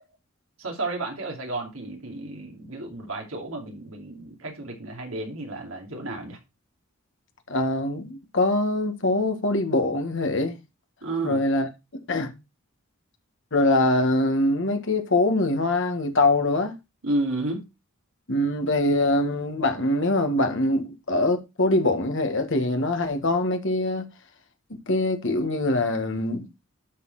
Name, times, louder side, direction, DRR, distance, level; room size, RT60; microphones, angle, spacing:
voice 1, 0.6-6.4 11.0-11.4 17.0-17.6, right 2 dB, 75° right, 2.7 m, -32 dB
voice 2, 7.5-10.6 11.2-11.7 12.1-12.3 13.5-16.7 18.3-24.1 24.9-26.5, left 2 dB, 60° left, 1.7 m, -23 dB
12.0 x 4.3 x 4.0 m
head